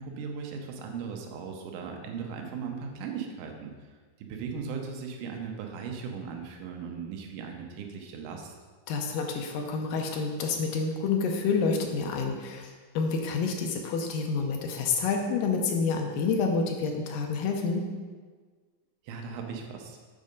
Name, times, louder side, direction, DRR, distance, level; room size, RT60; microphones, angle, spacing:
voice 1, 0.0-3.7 4.2-8.5 19.0-20.0, right 6 dB, 75° right, 2 dB, 2.2 m, -38 dB
voice 2, 8.9-17.9, left 4 dB, 80° left, 3 dB, 2.3 m, -28 dB
7.5 x 4.8 x 5.2 m, 1.5 s
omnidirectional pair, 4.1 m